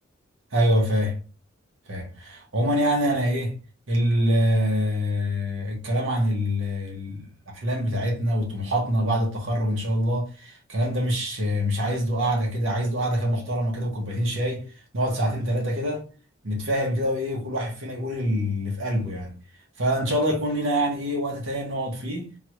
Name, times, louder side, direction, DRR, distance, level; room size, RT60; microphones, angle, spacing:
voice 1, 0.5-1.2 1.9-3.5 3.9-7.3 7.5-14.6 14.9-16.0 16.4-19.3 19.8-22.3, equal, 70° right, 1.3 m, -25 dB
3.8 x 2.4 x 3.0 m
head